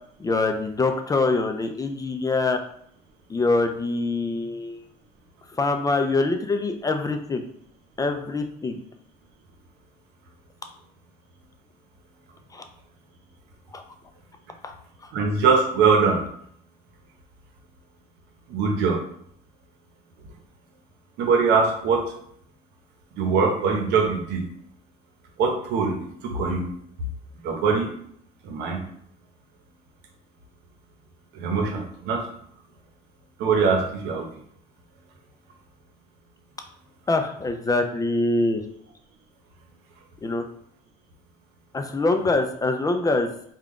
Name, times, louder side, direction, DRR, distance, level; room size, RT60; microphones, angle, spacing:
voice 1, 0.2-2.6 3.3-4.8 5.5-7.5 8.0-8.8 12.5-12.6 13.7-13.8 14.6-14.7 37.1-38.6 40.2-40.4 41.7-43.3, left 3 dB, 20° left, 5 dB, 0.4 m, -24 dB
voice 2, 15.1-16.2 18.5-19.0 21.2-22.1 23.1-24.4 25.4-26.0 26.2-26.7 27.4-27.9 28.4-28.8 31.3-32.2 33.4-34.3, right 5 dB, 90° right, 2 dB, 0.8 m, -22 dB
3.6 x 2.3 x 3.6 m, 0.66 s
cardioid pair, 110°, 17 cm